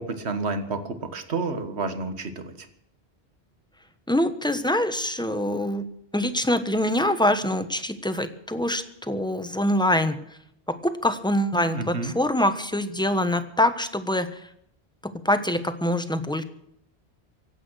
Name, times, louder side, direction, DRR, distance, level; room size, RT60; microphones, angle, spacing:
voice 1, 0.0-2.7 11.7-12.1, right 3 dB, 80° right, 9 dB, 1.7 m, -30 dB
voice 2, 4.1-5.9 6.1-10.2 10.7-14.5 15.0-16.4, left 1 dB, 5° left, 9 dB, 1.2 m, -24 dB
24.5 x 8.8 x 6.4 m, 0.74 s
omnidirectional pair, 1.1 m